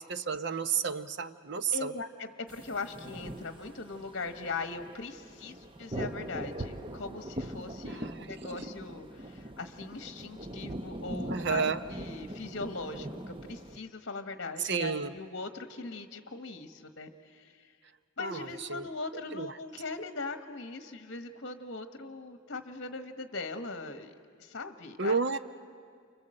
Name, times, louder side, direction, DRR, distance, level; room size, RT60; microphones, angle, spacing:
voice 1, 0.0-1.9 7.9-8.3 11.3-11.8 14.6-15.1 18.2-18.8 19.3-19.5 25.0-25.4, right 5 dB, 55° right, 12 dB, 0.7 m, -31 dB
voice 2, 1.7-17.7 18.2-24.1 24.4-25.2, left 3 dB, 55° left, 8 dB, 1.2 m, -40 dB
sound 1, 2.5-13.8, right 1 dB, 25° right, 0.8 m, -41 dB
29.5 x 25.0 x 7.7 m, 2.1 s
head